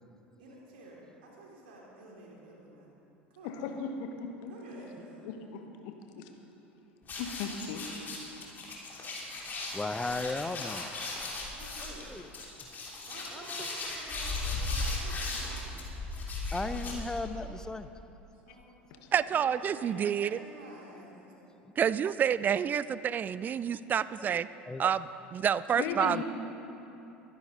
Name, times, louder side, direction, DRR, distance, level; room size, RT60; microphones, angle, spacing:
voice 1, 0.4-2.9 3.3-3.7 4.5-5.3 11.5-12.2 13.0-15.8 18.3-18.7 18.9-21.4, right 2 dB, 60° right, -3 dB, 3.5 m, -50 dB
voice 2, 3.4-4.5 5.2-6.3 7.2-7.8 8.9-9.0 25.8-26.2, left 6 dB, 55° left, 5 dB, 1.4 m, -37 dB
sound 1, 7.0-17.5, left 2 dB, 30° left, 3.3 m, -37 dB
voice 3, 9.4-11.5 11.8-13.0 13.3-14.2 14.5-14.6 16.5-17.9 24.2-24.4 24.7-24.8 26.1-26.2, left 2 dB, 10° left, 11 dB, 0.7 m, -38 dB
voice 4, 19.1-20.4 21.8-24.5 24.8-26.2, right 8 dB, 30° right, 17 dB, 0.4 m, -28 dB
23.0 x 10.5 x 4.0 m, 3.0 s
figure-of-eight pair, 70°, 6 cm